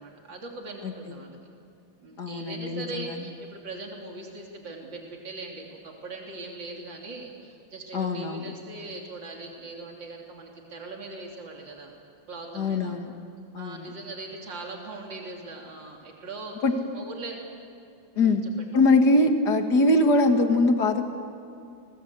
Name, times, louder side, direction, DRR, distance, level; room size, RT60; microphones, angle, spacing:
voice 1, 0.0-1.4 2.0-11.9 12.3-13.0 13.6-16.6 16.9-17.4 18.1-18.4, right 2 dB, 70° right, 0 dB, 3.8 m, -40 dB
voice 2, 0.8-1.2 2.2-3.1 7.9-8.5 12.5-13.1 13.5-13.9 16.6-16.7 18.2-18.4 18.7-21.0, left 2 dB, 60° left, 5 dB, 2.4 m, -22 dB
29.5 x 22.0 x 8.3 m, 2.5 s
omnidirectional pair, 2.1 m